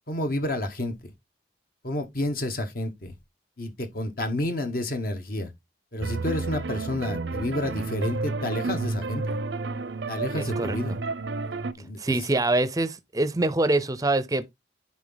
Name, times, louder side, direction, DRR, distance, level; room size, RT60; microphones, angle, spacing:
voice 1, 0.1-0.9 1.8-3.1 3.6-5.5 5.9-9.4 10.1-11.0 11.8-12.2, left 1 dB, 50° left, 1.1 m, -30 dB
sound 1, 6.0-11.7, right 3 dB, 80° right, 0.7 m, -31 dB
voice 2, 10.3-11.0 12.0-14.5, right 2 dB, 20° right, 0.5 m, -25 dB
9.8 x 3.6 x 3.9 m
head